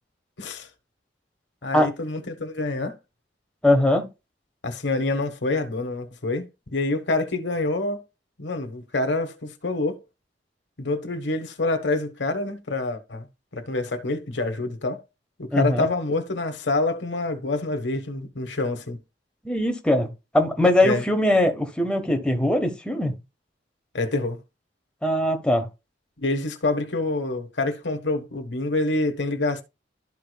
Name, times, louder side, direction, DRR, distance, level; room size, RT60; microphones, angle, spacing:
voice 1, 0.4-0.7 1.6-3.0 4.6-8.0 8.4-10.0 10.8-13.3 13.5-15.0 15.4-19.0 20.8-21.0 23.9-24.4 26.2-29.6, left 2 dB, 90° left, 1.3 m, -27 dB
voice 2, 3.6-4.1 15.5-15.9 19.4-20.1 20.3-23.1 25.0-25.7, left 1 dB, 5° left, 1.3 m, -21 dB
12.5 x 4.9 x 2.3 m
head